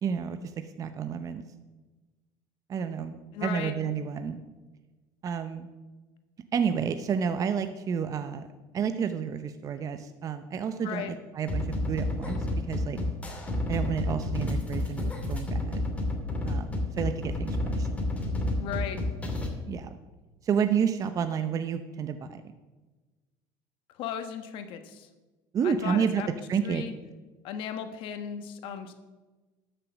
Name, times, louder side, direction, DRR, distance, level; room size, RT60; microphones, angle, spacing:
voice 1, 0.0-1.4 2.7-4.4 5.2-5.7 6.5-8.5 8.7-12.4 12.7-13.0 13.7-15.8 16.4-17.9 19.7-19.9 20.4-22.4 25.5-26.2 26.5-26.8, right 7 dB, 35° right, 9 dB, 0.7 m, -30 dB
voice 2, 3.3-3.7 10.8-11.1 18.6-19.0 23.9-25.1 25.6-26.3 26.6-26.9 27.4-28.9, left 8 dB, 65° left, 8 dB, 1.2 m, -36 dB
sound 1, 11.5-19.5, left 1 dB, 15° left, 2.5 m, -30 dB
12.5 x 6.7 x 6.2 m, 1.2 s
supercardioid pair, 110°, 10 cm